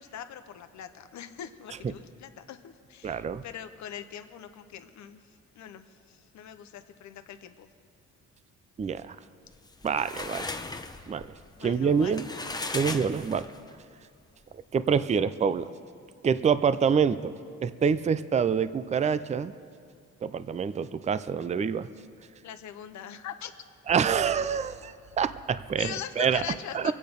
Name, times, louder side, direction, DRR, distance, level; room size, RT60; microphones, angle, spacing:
voice 1, 0.0-5.2 5.5-7.7 11.6-12.4 22.4-23.5 25.8-26.9, left 9 dB, 70° left, 9 dB, 0.9 m, -42 dB
voice 2, 3.0-3.4 8.8-9.2 9.8-10.6 11.1-11.3 11.6-12.3 12.7-13.5 14.5-15.6 16.2-17.3 17.6-19.5 20.2-21.9 23.9-26.4 26.7-26.9, right 6 dB, 25° right, 14 dB, 0.4 m, -26 dB
sound 1, 9.5-13.7, left 3 dB, 15° left, 0.8 m, -37 dB
23.0 x 8.5 x 5.2 m, 2.3 s
cardioid pair, 90°, 30 cm